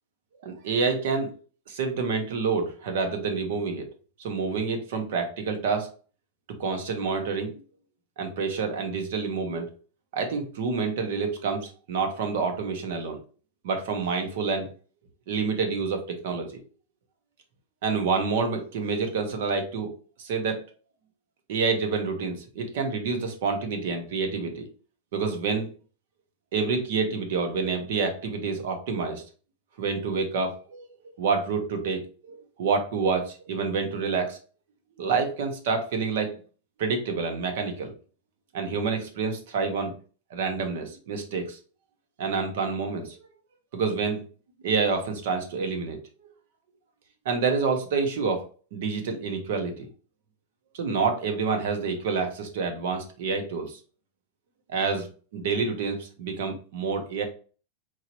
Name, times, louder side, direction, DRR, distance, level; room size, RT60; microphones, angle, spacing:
voice 1, 0.4-1.4 1.7-3.9 4.2-5.9 6.6-7.6 8.2-9.7 10.1-13.2 13.6-14.7 15.3-16.6 17.8-19.9 20.2-20.6 21.5-24.7 25.1-25.7 26.5-29.2 29.8-30.9 31.2-34.4 35.0-36.4 36.8-37.9 38.5-39.9 40.3-41.6 42.2-43.2 43.7-44.2 44.6-46.0 47.2-49.9 50.7-53.8 54.7-55.1 55.3-57.2, right 4 dB, 60° right, 5 dB, 1.2 m, -28 dB
4.6 x 2.9 x 3.0 m, 0.38 s
supercardioid pair, 165°, 0 cm